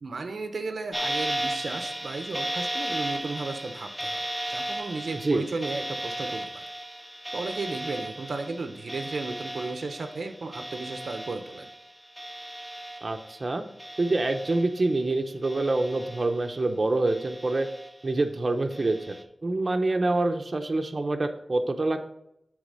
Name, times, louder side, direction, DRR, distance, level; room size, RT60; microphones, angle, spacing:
voice 1, 0.0-6.6 7.3-11.7, right 3 dB, 85° right, 7 dB, 0.6 m, -34 dB
sound 1, 0.9-13.5 13.8-15.0 15.4-16.6 17.1-18.1 18.7-19.2, right 1 dB, 5° right, 0.9 m, -35 dB
voice 2, 13.0-13.6 14.0-17.7 18.0-19.2 19.4-22.0, right 2 dB, 45° right, 5 dB, 0.7 m, -26 dB
8.2 x 3.4 x 5.4 m, 0.78 s
wide cardioid pair, 75°, 0 cm